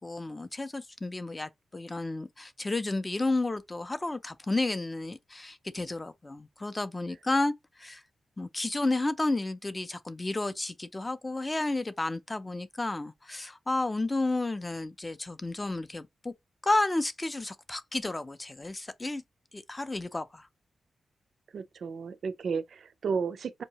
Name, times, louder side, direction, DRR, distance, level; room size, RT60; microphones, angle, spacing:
voice 1, 0.0-8.0 8.4-16.3 16.6-19.2 19.5-20.5, left 2 dB, 15° left, 0.4 m, -32 dB
voice 2, 21.5-23.6, right 5 dB, 60° right, 0.4 m, -33 dB
5.3 x 2.7 x 2.8 m
wide cardioid pair, 165°, 0 cm